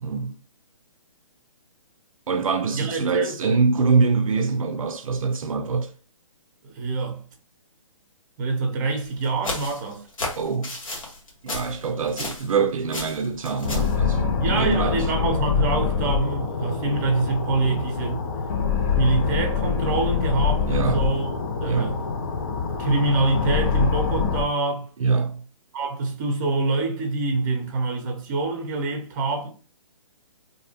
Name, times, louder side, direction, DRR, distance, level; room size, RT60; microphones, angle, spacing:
voice 1, 0.0-0.3 2.3-5.9 10.4-10.7 11.4-15.0 20.7-21.0 21.6-22.0 25.0-25.4, right 4 dB, 80° right, 0.4 m, -24 dB
voice 2, 2.7-3.5 6.6-7.2 8.4-10.1 14.4-18.2 18.9-22.0 22.8-24.9 25.7-29.5, right 3 dB, 35° right, 0.7 m, -25 dB
sound 1, 9.0-12.6 12.9-14.0, left 2 dB, 70° left, 1.0 m, -33 dB
sound 2, 13.6-24.4, left 6 dB, 35° left, 0.4 m, -25 dB
2.6 x 2.0 x 2.7 m
hypercardioid pair, 140°, 17 cm